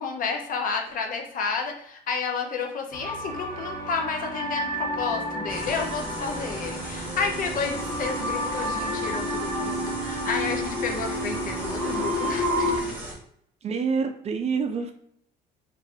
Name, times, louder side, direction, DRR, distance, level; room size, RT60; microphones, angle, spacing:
voice 1, 0.0-13.0, left 5 dB, 55° left, 3 dB, 0.7 m, -31 dB
sound 1, 2.9-12.8, equal, 15° left, 0.9 m, -30 dB
sound 2, 5.5-13.1, right 1 dB, 10° right, 1.2 m, -37 dB
voice 2, 13.6-14.9, right 5 dB, 40° right, 6 dB, 0.5 m, -27 dB
2.6 x 2.5 x 3.4 m, 0.69 s
cardioid pair, 110°, 17 cm